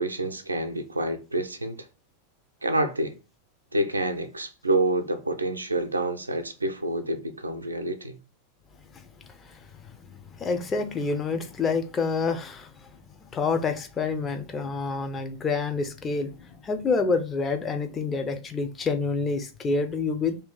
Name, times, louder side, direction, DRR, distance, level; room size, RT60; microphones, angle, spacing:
voice 1, 0.0-1.9 2.6-3.2 3.7-8.2, right 2 dB, 80° right, 0.4 m, -28 dB
voice 2, 10.1-12.9 13.3-20.4, left 4 dB, 20° left, 0.5 m, -28 dB
2.7 x 2.4 x 3.7 m
figure-of-eight pair, 90°, 0 cm